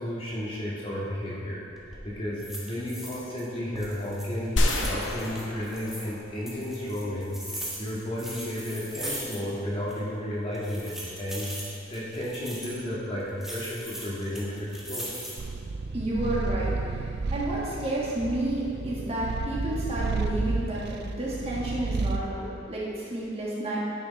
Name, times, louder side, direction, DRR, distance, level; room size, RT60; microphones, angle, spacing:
voice 1, 0.0-1.6 2.0-7.3 7.8-11.5 11.9-15.1, left 1 dB, 30° left, -6 dB, 1.7 m, -33 dB
sound 1, 1.7-2.0 2.4-3.5 3.7-6.1 6.5-9.6 9.9-10.0 10.5-12.8 13.4-15.5 16.0-16.5, right 1 dB, ahead, 1.4 m, -39 dB
sound 2, 4.6-6.8, left 1 dB, 65° left, 0.8 m, -29 dB
Purr, 15.4-22.3, right 3 dB, 55° right, 0.4 m, -31 dB
voice 2, 15.9-23.8, right 1 dB, 30° right, -6 dB, 1.7 m, -31 dB
9.8 x 6.2 x 4.2 m, 2.6 s
head